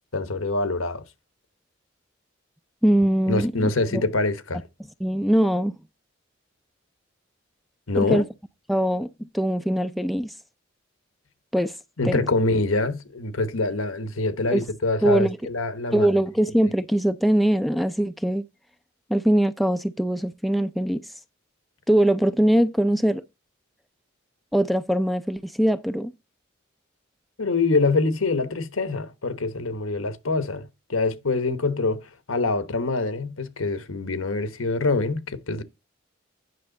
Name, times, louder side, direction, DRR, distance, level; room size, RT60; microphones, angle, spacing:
voice 1, 0.1-1.0 3.3-4.6 7.9-8.2 12.0-16.1 27.4-35.6, left 3 dB, 90° left, 1.1 m, -25 dB
voice 2, 2.8-4.0 5.0-5.7 8.0-8.2 8.7-10.3 11.5-11.7 12.0-12.2 14.5-14.6 15.0-15.4 15.9-18.5 19.1-21.0 21.9-23.2 24.5-26.1, right 1 dB, ahead, 0.4 m, -22 dB
9.7 x 6.1 x 3.9 m
head